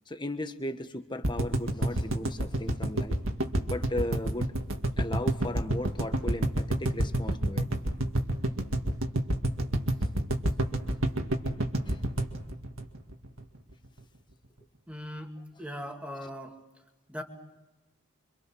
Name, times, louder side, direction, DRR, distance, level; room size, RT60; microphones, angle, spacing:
voice 1, 0.1-3.2 3.7-4.5 5.0-7.7 10.0-10.1 11.9-12.0 16.2-16.3, left 1 dB, 20° left, 8 dB, 1.3 m, -36 dB
sound 1, 1.2-13.4 13.7-13.8 14.0-14.1, right 1 dB, 60° right, 2.2 m, -28 dB
voice 2, 14.9-16.6 17.1-17.2, equal, 5° right, 3 dB, 2.3 m, -39 dB
27.0 x 26.0 x 6.3 m, 1.1 s
head